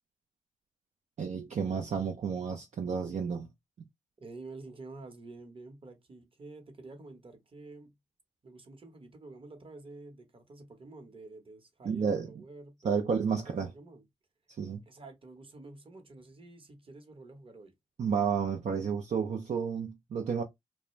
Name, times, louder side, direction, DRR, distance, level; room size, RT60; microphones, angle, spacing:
voice 1, 1.2-3.5 11.8-12.3 12.8-13.7 14.6-14.8 18.0-20.4, right 6 dB, 60° right, 0.5 m, -31 dB
voice 2, 4.2-7.9 8.4-14.0 14.9-17.7, right 2 dB, 40° right, 0.9 m, -49 dB
2.4 x 2.1 x 3.0 m
cardioid pair, 55°, 14 cm